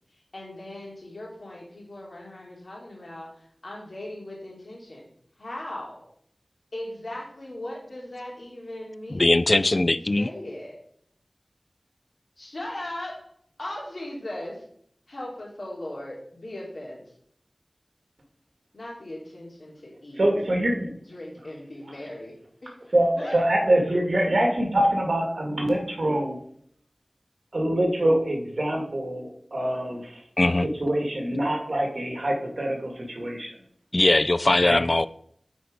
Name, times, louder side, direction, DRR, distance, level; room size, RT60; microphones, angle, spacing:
voice 1, 0.1-5.1 5.4-6.1 6.7-10.8 12.4-13.3 13.6-14.6 15.1-17.0 18.7-20.3 21.1-22.3 22.6-23.4, left 1 dB, 70° left, -3 dB, 2.9 m, -38 dB
voice 2, 9.1-10.3 30.4-30.7 33.9-35.1, left 2 dB, 50° left, 15 dB, 0.3 m, -20 dB
voice 3, 20.2-20.9 22.9-26.4 27.5-30.2 30.8-33.5 34.6-34.8, right 1 dB, 70° right, 1 dB, 2.0 m, -24 dB
9.1 x 4.5 x 5.1 m, 0.65 s
wide cardioid pair, 55°, 0 cm